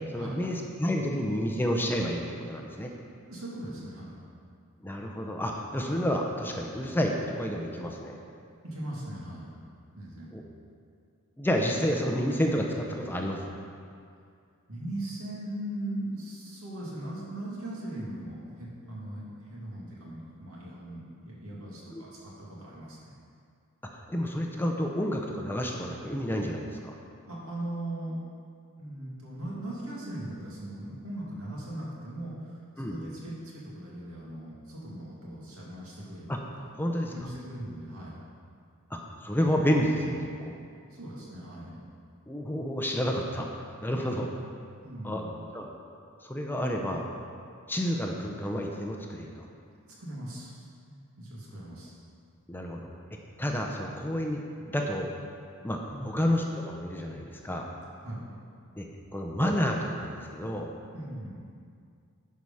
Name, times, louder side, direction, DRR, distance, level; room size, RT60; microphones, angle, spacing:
voice 1, 0.1-2.9 4.8-8.2 10.3-10.4 11.4-13.5 21.9-22.0 23.9-27.0 32.8-33.0 36.3-36.4 36.8-37.3 38.9-40.6 42.3-43.5 43.8-44.3 45.0-45.2 45.5-45.7 46.2-47.1 47.7-49.5 52.5-52.9 53.4-55.1 55.6-57.7 58.8-58.9 59.1-60.7, equal, 10° left, 1 dB, 0.6 m, -30 dB
voice 2, 3.3-4.2 8.6-9.5 9.9-10.3 14.7-23.1 27.3-28.2 28.8-36.3 36.6-36.7 37.0-38.1 40.9-41.8 44.8-45.4 49.9-50.7 51.2-51.9 55.9-56.3 58.0-58.2 60.9-61.4, right 1 dB, 75° right, -6 dB, 2.4 m, -39 dB
11.0 x 4.8 x 5.5 m, 2.3 s
head